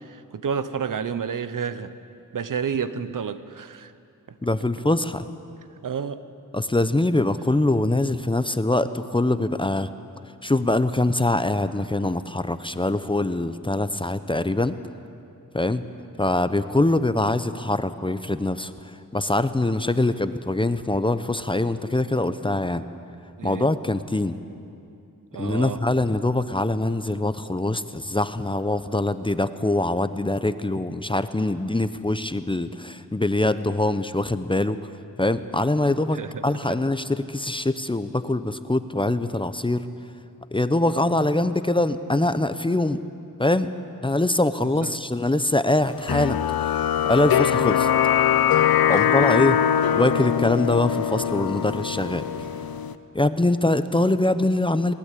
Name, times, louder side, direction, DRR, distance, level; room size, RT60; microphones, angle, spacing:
voice 1, 0.0-1.9 2.3-3.9 4.3-4.4 5.8-6.2 23.4-23.7 25.3-25.8 36.1-36.8 44.6-44.9 48.9-49.3, right 7 dB, 65° right, 13 dB, 1.0 m, -30 dB
voice 2, 4.4-5.3 6.5-9.9 10.4-14.8 15.5-15.8 16.2-22.8 23.4-24.4 25.4-34.8 35.2-39.9 40.5-43.0 43.4-43.7 44.0-46.8 47.0-47.9 48.9-49.6 49.9-52.3 53.1-54.9, left 2 dB, 15° left, 12 dB, 0.8 m, -23 dB
sound 1, 46.1-52.9, left 9 dB, 85° left, 0.8 m, -22 dB
22.0 x 19.0 x 8.4 m, 2.5 s
wide cardioid pair, 85°, 35 cm